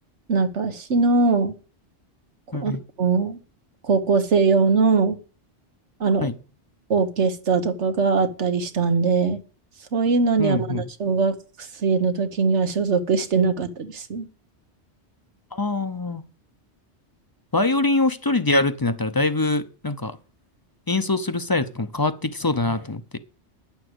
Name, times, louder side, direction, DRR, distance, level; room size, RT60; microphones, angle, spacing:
voice 1, 0.3-1.5 2.6-2.7 3.0-3.4 3.8-5.2 6.0-6.3 6.9-9.4 9.9-14.3, right 4 dB, 85° right, 1.5 m, -21 dB
voice 2, 10.4-10.8 15.5-16.2 17.5-20.2 20.9-23.2, left 2 dB, 25° left, 0.6 m, -23 dB
9.9 x 7.0 x 7.9 m
omnidirectional pair, 1.2 m